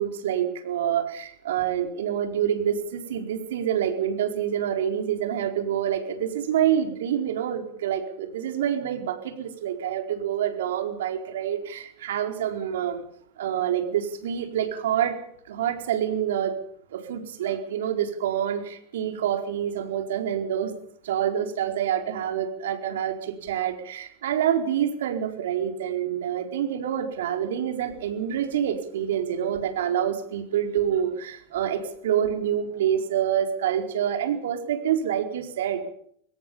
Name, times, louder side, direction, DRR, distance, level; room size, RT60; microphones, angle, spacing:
voice 1, 0.0-13.0 13.4-15.2 15.5-16.5 16.9-20.7 21.0-35.8, right 9 dB, 80° right, 6 dB, 4.6 m, -27 dB
22.0 x 18.0 x 7.2 m, 0.66 s
supercardioid pair, 155°, 0 cm